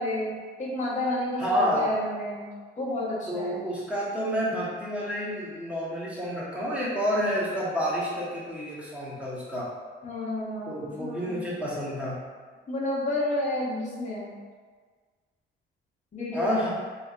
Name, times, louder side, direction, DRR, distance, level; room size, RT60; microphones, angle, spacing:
voice 1, 0.0-2.5 2.8-3.6 10.0-11.5 12.7-14.3 16.1-16.7, left 1 dB, 40° left, -5 dB, 0.9 m, -30 dB
voice 2, 1.4-1.8 3.3-9.7 10.7-12.2 16.3-16.7, equal, 5° right, -7 dB, 1.1 m, -29 dB
3.2 x 3.0 x 2.5 m, 1.5 s
cardioid pair, 90°, 20 cm